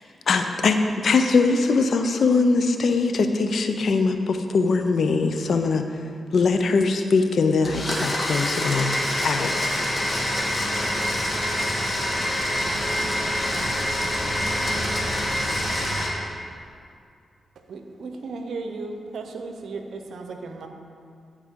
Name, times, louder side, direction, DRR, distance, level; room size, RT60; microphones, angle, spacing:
voice 1, 0.3-0.8 1.0-5.8 6.3-9.0 9.2-9.5, left 4 dB, 70° left, 7 dB, 0.5 m, -21 dB
Domestic sounds home sounds, 7.6-16.1, left 1 dB, 40° left, 1.8 m, -26 dB
sound 1, 7.9-12.9, left 1 dB, 25° left, 1.6 m, -44 dB
sound 2, 8.2-16.0, right 2 dB, 60° right, 1.0 m, -36 dB
voice 2, 17.7-20.7, right 3 dB, 75° right, 5 dB, 0.7 m, -35 dB
14.0 x 4.8 x 3.7 m, 2.3 s
supercardioid pair, 50°, 0 cm